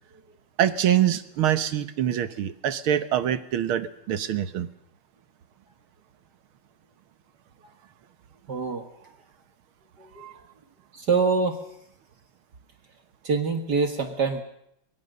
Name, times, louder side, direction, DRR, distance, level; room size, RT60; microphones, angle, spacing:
voice 1, 0.6-4.7 10.2-10.3, right 11 dB, 75° right, 12 dB, 2.0 m, -25 dB
voice 2, 8.5-8.9 10.0-10.3 10.9-11.6 13.2-14.4, right 4 dB, 50° right, 5 dB, 2.3 m, -25 dB
23.5 x 22.5 x 6.7 m, 0.75 s
omnidirectional pair, 2.3 m